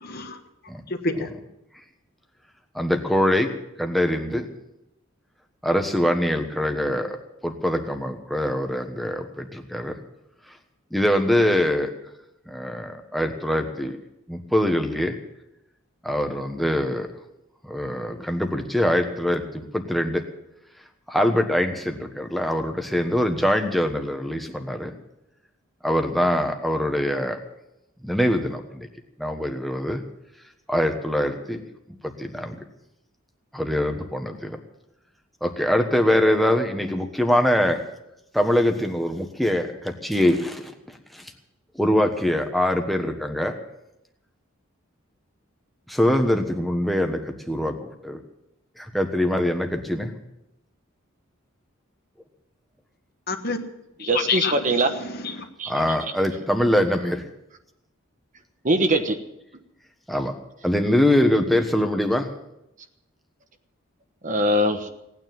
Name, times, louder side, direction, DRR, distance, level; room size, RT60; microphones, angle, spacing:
voice 1, 0.0-0.4 0.9-1.3 53.3-53.6 54.0-54.5 55.0-55.4, left 4 dB, 50° left, 6 dB, 1.4 m, -27 dB
voice 2, 2.7-3.5 3.8-4.5 5.6-7.2 7.4-9.9 10.9-11.9 12.5-14.0 14.3-15.2 16.0-17.1 17.7-20.2 21.1-24.9 25.8-27.4 28.0-28.9 29.2-30.0 30.7-31.6 32.2-32.5 33.5-34.6 35.4-37.8 38.3-40.7 41.1-41.2 41.8-43.5 45.9-47.7 48.0-48.2 48.8-50.1 55.7-57.2 60.1-60.3 60.6-62.3, left 1 dB, ahead, 4 dB, 1.3 m, -23 dB
voice 3, 54.1-55.0 55.6-55.7 58.6-59.2 64.2-64.9, right 1 dB, 40° right, 7 dB, 1.2 m, -21 dB
18.0 x 9.5 x 7.7 m, 0.86 s
head